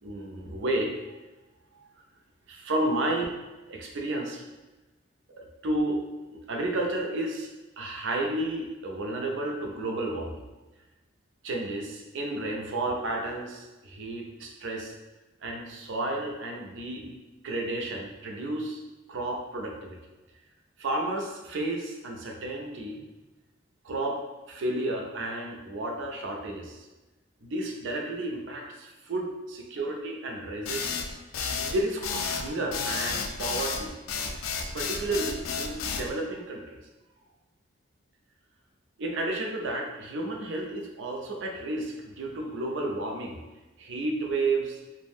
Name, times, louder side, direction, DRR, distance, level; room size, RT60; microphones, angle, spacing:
voice 1, 0.0-1.2 1.7-1.8 2.5-3.2 3.7-4.4 5.4-6.0 6.3-7.5 7.8-10.4 11.4-14.9 15.4-17.1 17.4-18.8 19.1-20.0 20.8-23.0 23.8-24.2 24.5-26.8 27.4-30.9 31.6-34.0 34.7-36.8 39.0-43.4 43.8-44.8, right 2 dB, 65° right, 1 dB, 0.5 m, -32 dB
sound 1, 30.7-36.1, left 6 dB, 85° left, 0.3 m, -31 dB
2.5 x 2.1 x 3.4 m, 1.1 s
head